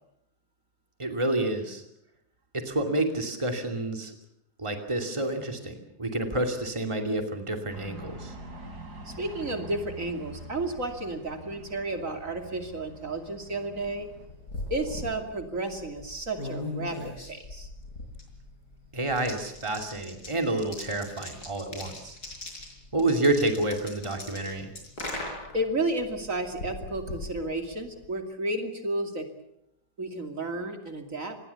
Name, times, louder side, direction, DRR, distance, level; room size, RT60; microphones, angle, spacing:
voice 1, 1.0-1.8 2.5-4.1 4.6-8.3 18.9-22.2 22.9-24.7, right 2 dB, 20° right, 5 dB, 2.7 m, -29 dB
sound 1, 7.7-14.3, right 1 dB, 75° right, 4.7 m, -45 dB
voice 2, 9.0-14.1 14.7-17.7 25.5-29.3 30.0-31.4, right 2 dB, 50° right, 5 dB, 3.0 m, -32 dB
sound 2, 14.1-28.1, left 2 dB, 70° left, 6.3 m, -41 dB
27.0 x 20.5 x 7.0 m, 0.79 s
omnidirectional pair, 1.7 m